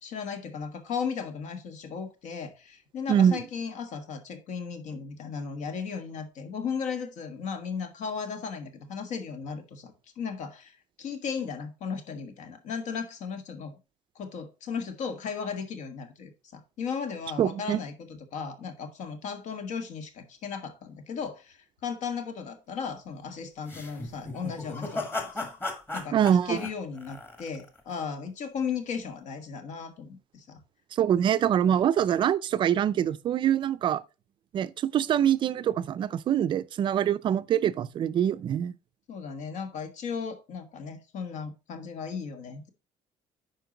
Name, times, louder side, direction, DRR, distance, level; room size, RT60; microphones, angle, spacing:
voice 1, 0.0-13.8 14.1-25.5 25.9-26.2 26.4-30.6 39.1-42.7, left 6 dB, 65° left, 1.4 m, -36 dB
voice 2, 3.1-3.4 17.4-17.8 26.1-26.6 30.9-34.0 34.5-38.7, right 9 dB, 35° right, 0.4 m, -24 dB
sound 1, 23.7-27.8, left 2 dB, 15° left, 1.6 m, -36 dB
10.5 x 4.5 x 3.9 m
cardioid pair, 165°, 13 cm